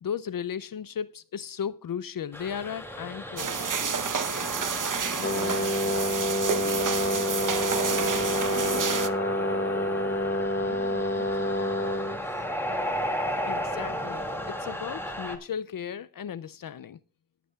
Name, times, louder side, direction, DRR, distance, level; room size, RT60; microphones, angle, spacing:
voice 1, 0.0-3.7 13.4-17.0, left 8 dB, 60° left, 0.5 m, -35 dB
sound 1, 2.3-15.4, equal, 5° left, 2.1 m, -35 dB
sound 2, 3.4-9.1, right 6 dB, 55° right, 0.9 m, -30 dB
voice 2, 4.9-6.0 10.6-12.5, right 3 dB, 30° right, 4.7 m, -48 dB
Brass instrument, 5.2-12.2, left 1 dB, 30° left, 1.0 m, -28 dB
21.0 x 8.4 x 2.3 m
wide cardioid pair, 65°, 37 cm